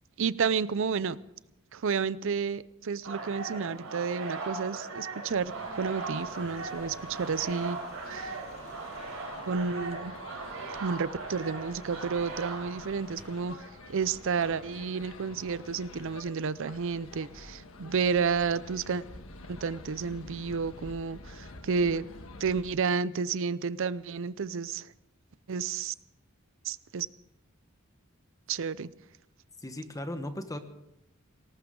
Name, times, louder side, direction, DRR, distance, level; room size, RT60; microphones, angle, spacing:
voice 1, 0.2-1.2 1.7-7.8 8.1-8.4 9.5-10.1 10.8-19.0 19.5-22.1 22.4-24.9 25.5-25.9 26.6-27.1 28.5-28.9, right 5 dB, 65° right, 18 dB, 0.5 m, -31 dB
sound 1, 3.0-13.5, right 3 dB, 80° right, 4.0 m, -39 dB
sound 2, 5.3-22.7, left 2 dB, 75° left, 1.5 m, -48 dB
sound 3, 6.3-9.7 10.1-10.2 10.6-16.1, left 2 dB, 50° left, 4.5 m, -57 dB
voice 2, 29.6-30.6, left 1 dB, 15° left, 8 dB, 1.2 m, -37 dB
19.0 x 18.5 x 3.8 m, 0.85 s
head